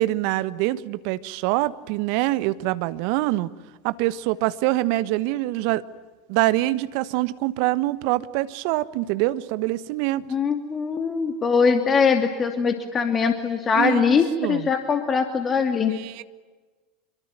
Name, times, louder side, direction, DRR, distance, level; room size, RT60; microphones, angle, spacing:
voice 1, 0.0-3.5 3.8-5.8 6.3-10.3 13.7-14.7 15.9-16.2, right 17 dB, 60° right, 15 dB, 1.2 m, -25 dB
voice 2, 10.3-15.9, left 5 dB, 30° left, 6 dB, 2.6 m, -22 dB
26.5 x 23.5 x 9.1 m, 1.3 s
hypercardioid pair, 80°, 0 cm